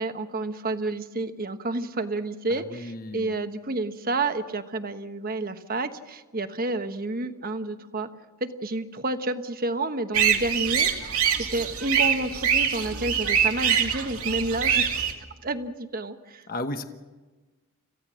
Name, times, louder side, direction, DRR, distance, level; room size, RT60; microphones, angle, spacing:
voice 1, 0.0-8.1 8.4-10.9 11.5-14.8 15.4-16.4, right 2 dB, 40° right, 8 dB, 1.2 m, -30 dB
voice 2, 2.5-3.4 16.5-16.9, left 1 dB, 40° left, 7 dB, 1.1 m, -34 dB
sound 1, 10.1-15.1, right 8 dB, 70° right, 2.5 m, -24 dB
27.5 x 16.0 x 6.3 m, 1.2 s
head